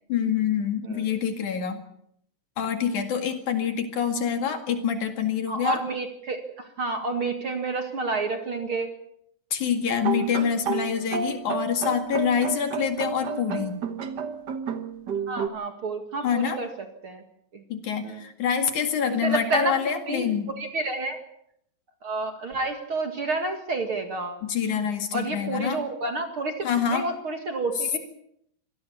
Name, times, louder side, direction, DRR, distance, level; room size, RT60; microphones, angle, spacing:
voice 1, 0.1-1.8 2.6-5.8 9.5-13.7 16.2-16.6 17.7-20.5 24.4-25.8 26.6-27.1, left 7 dB, 60° left, 7 dB, 3.3 m, -26 dB
voice 2, 5.5-8.9 15.3-16.7 17.0-17.2 17.5-17.6 18.0-18.2 19.1-19.8 20.1-20.3 20.6-21.2 22.0-24.4 25.1-28.0, right 3 dB, 45° right, 5 dB, 2.3 m, -29 dB
sound 1, 9.9-15.5, right 6 dB, 80° right, 0.9 m, -31 dB
25.5 x 18.0 x 7.0 m, 0.71 s
omnidirectional pair, 4.1 m